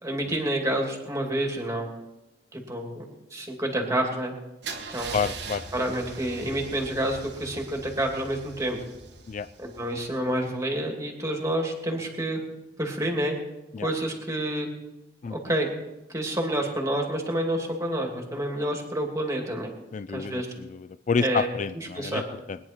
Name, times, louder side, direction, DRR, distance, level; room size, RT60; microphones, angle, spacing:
voice 1, 0.0-1.9 2.5-3.0 3.3-4.3 4.9-5.2 5.7-8.8 9.6-12.4 12.8-13.4 13.8-14.7 15.3-15.7 16.1-19.7 20.1-20.5 21.2-21.5 21.9-22.2, right 1 dB, 15° right, 1 dB, 2.6 m, -28 dB
Car / Engine starting / Idling, 4.6-10.5, right 4 dB, 65° right, 1.5 m, -41 dB
voice 2, 5.1-5.6 9.3-9.5 13.7-13.9 15.2-15.4 19.9-22.6, left 5 dB, 40° left, 13 dB, 0.4 m, -29 dB
21.5 x 10.5 x 4.5 m, 0.96 s
head